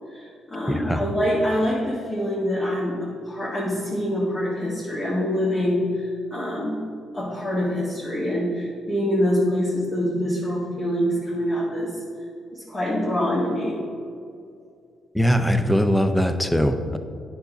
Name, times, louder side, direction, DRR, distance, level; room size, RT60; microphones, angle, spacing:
voice 1, 0.1-6.8 7.1-12.0 12.5-13.8, equal, 30° left, -6 dB, 1.8 m, -25 dB
voice 2, 0.7-1.0 15.1-17.0, equal, 5° left, 8 dB, 0.6 m, -21 dB
9.4 x 5.9 x 4.0 m, 2.4 s
cardioid pair, 90°, 0 cm